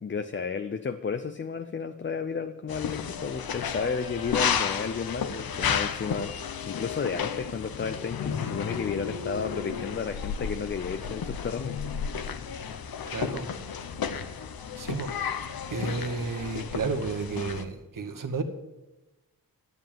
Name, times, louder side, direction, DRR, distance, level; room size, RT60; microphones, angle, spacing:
voice 1, 0.0-6.3 6.6-12.1, left 5 dB, 35° left, 9 dB, 0.5 m, -32 dB
sound 1, 2.7-17.6, left 7 dB, 90° left, 0.9 m, -32 dB
voice 2, 13.1-13.5 14.7-15.1 15.7-18.4, right 4 dB, 65° right, 7 dB, 1.3 m, -32 dB
12.5 x 7.2 x 7.5 m, 1.1 s
wide cardioid pair, 130°, 35 cm